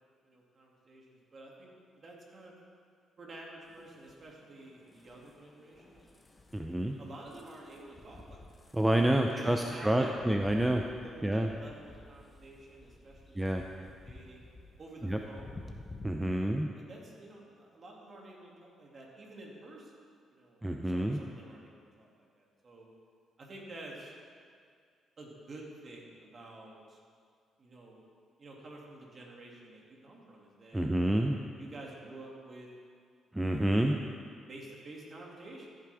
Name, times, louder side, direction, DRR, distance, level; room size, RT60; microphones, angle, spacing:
voice 1, 0.2-2.6 3.2-6.0 7.0-8.4 9.0-10.2 11.0-14.4 14.8-15.8 16.7-19.9 20.3-22.9 23.4-24.1 25.2-27.0 27.6-28.0 28.4-30.9 31.5-32.7 33.4-34.1 34.5-35.7, right 2 dB, 40° right, -2 dB, 2.5 m, -50 dB
sound 1, 3.6-16.0, left 2 dB, 20° left, 1.0 m, -53 dB
voice 2, 6.5-7.0 8.7-10.8 11.2-11.5 13.4-13.6 15.0-15.2 16.0-16.7 20.6-21.2 30.7-31.4 33.3-34.0, right 1 dB, 10° right, 3 dB, 0.5 m, -28 dB
14.5 x 8.5 x 3.5 m, 2.1 s
cardioid pair, 90°, 0 cm